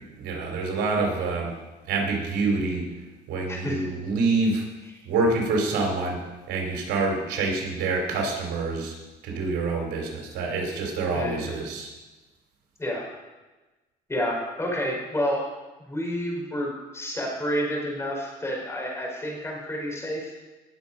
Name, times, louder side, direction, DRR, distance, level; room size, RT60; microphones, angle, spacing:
voice 1, 0.2-1.5 1.9-2.8 3.3-4.6 5.1-6.2 6.5-8.9 9.2-11.9, right 3 dB, 80° right, 1 dB, 3.6 m, -26 dB
voice 2, 3.5-3.9 11.1-11.6 12.8-13.1 14.1-15.4 15.9-20.3, equal, 15° left, -1 dB, 4.5 m, -29 dB
18.5 x 6.9 x 5.4 m, 1.2 s
cardioid pair, 110°, 17 cm